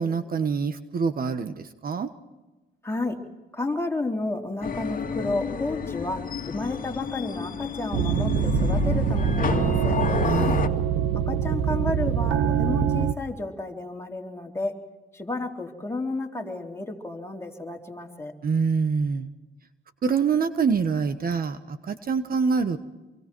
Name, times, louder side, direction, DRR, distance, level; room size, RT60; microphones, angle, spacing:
voice 1, 0.0-2.1 10.2-10.7 18.4-19.3 20.0-22.8, right 5 dB, 45° right, 10 dB, 1.3 m, -25 dB
voice 2, 2.8-3.2 3.5-10.0 11.3-14.7 15.1-18.3, left 2 dB, 15° left, 1 dB, 3.8 m, -31 dB
sound 1, 4.6-10.7, left 6 dB, 45° left, 2.2 m, -30 dB
sound 2, 7.9-13.1, right 8 dB, 80° right, 1.2 m, -24 dB
27.5 x 24.0 x 4.6 m, 1.1 s
cardioid pair, 90°, 20 cm